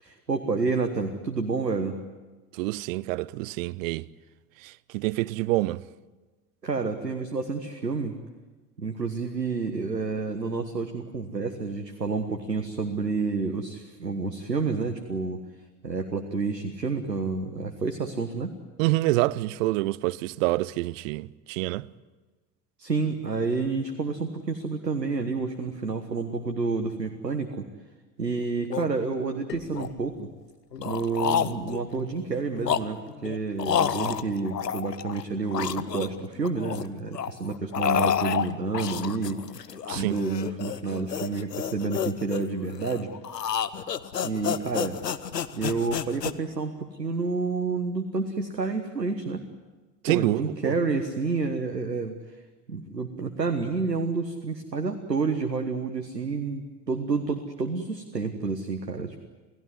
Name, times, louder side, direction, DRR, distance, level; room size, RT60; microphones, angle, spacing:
voice 1, 0.0-2.0 6.6-8.2 8.8-15.4 15.8-18.5 22.8-27.7 28.2-30.3 30.8-39.4 39.9-43.1 44.2-45.0 45.5-49.4 50.1-52.2 52.7-59.2, right 4 dB, 85° right, 1.4 m, -29 dB
voice 2, 2.6-4.0 4.6-5.8 18.8-21.9 39.9-40.2 50.0-50.7, right 19 dB, 55° right, 0.7 m, -27 dB
sound 1, 28.2-28.3 28.6-28.9 29.5-30.3 30.7-31.9 32.4-35.2 35.5-36.9 37.1-46.3, left 8 dB, 80° left, 1.0 m, -30 dB
29.0 x 17.0 x 9.6 m
figure-of-eight pair, 70°, 48 cm